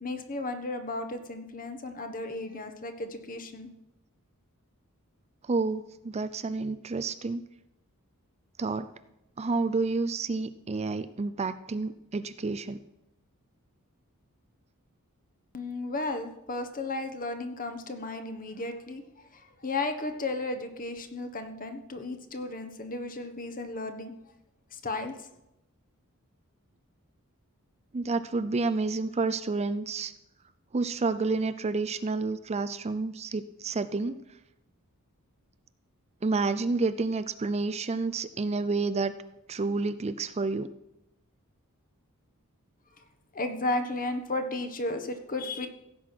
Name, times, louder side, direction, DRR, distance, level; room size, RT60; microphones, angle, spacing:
voice 1, 0.0-3.7 15.5-19.0 19.3-24.1 24.7-25.2 43.3-45.7, left 2 dB, 40° left, 7 dB, 1.3 m, -34 dB
voice 2, 5.4-7.4 8.6-8.9 9.4-12.8 27.9-30.1 30.7-34.2 36.2-39.1 39.5-40.7, right 3 dB, 30° right, 12 dB, 0.4 m, -29 dB
16.0 x 7.9 x 6.0 m, 0.88 s
head